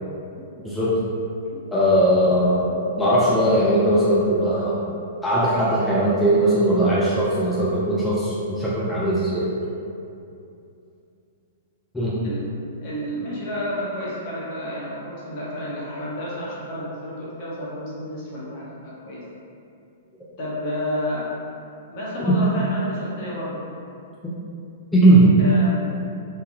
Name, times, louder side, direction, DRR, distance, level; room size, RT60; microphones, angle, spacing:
voice 1, 0.6-1.0 1.7-4.8 5.2-9.5 11.9-12.1 22.3-22.4 24.9-25.3, right 1 dB, 5° left, -9 dB, 0.4 m, -19 dB
voice 2, 12.8-19.2 20.4-21.3 21.9-23.6 25.4-25.7, equal, 45° left, -6 dB, 0.8 m, -30 dB
3.2 x 2.2 x 2.5 m, 2.6 s
figure-of-eight pair, 105°, 0 cm